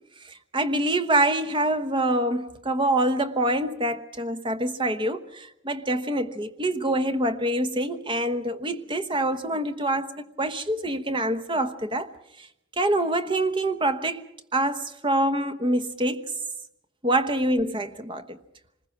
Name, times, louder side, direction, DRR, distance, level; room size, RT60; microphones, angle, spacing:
voice 1, 0.3-10.1 10.4-12.1 12.8-14.2 14.5-16.2 17.0-18.4, right 1 dB, 25° right, 1.1 m, -25 dB
26.5 x 20.5 x 5.9 m
head